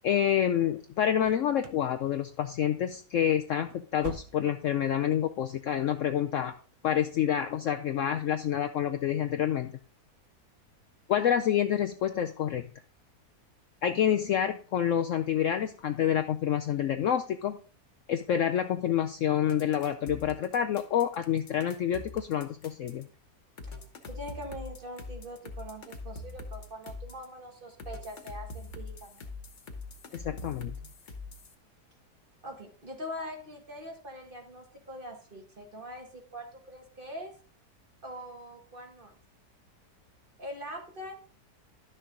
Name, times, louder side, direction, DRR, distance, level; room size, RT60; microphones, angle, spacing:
voice 1, 0.0-6.5 6.8-9.7 11.1-12.7 13.8-17.6 18.1-23.1 30.1-30.7, left 10 dB, 70° left, 7 dB, 0.8 m, -28 dB
sound 1, 1.2-1.9 2.2-2.6 2.9-3.1 3.5-4.8 5.1-5.2 5.7-5.8, right 9 dB, 75° right, 1.4 m, -45 dB
sound 2, 19.5-23.0 23.6-27.3 27.8-31.5, left 3 dB, 50° left, 1.5 m, -43 dB
voice 2, 24.0-29.3 32.4-37.3 38.0-39.1 40.4-41.2, equal, 35° right, 2 dB, 1.6 m, -43 dB
11.5 x 6.5 x 3.8 m, 0.41 s
omnidirectional pair, 1.7 m